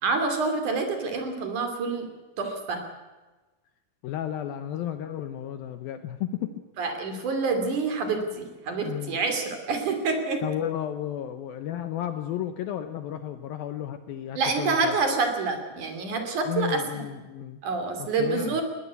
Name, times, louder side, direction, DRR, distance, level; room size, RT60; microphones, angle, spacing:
voice 1, 0.0-2.1 2.4-2.8 6.8-10.4 14.4-16.8 17.6-18.6, right 4 dB, 50° right, 6 dB, 4.1 m, -27 dB
voice 2, 4.0-6.6 8.8-9.2 10.4-15.0 16.5-17.6 18.0-18.6, left 11 dB, 75° left, 10 dB, 2.4 m, -33 dB
20.5 x 19.0 x 8.3 m, 1.2 s
omnidirectional pair, 4.8 m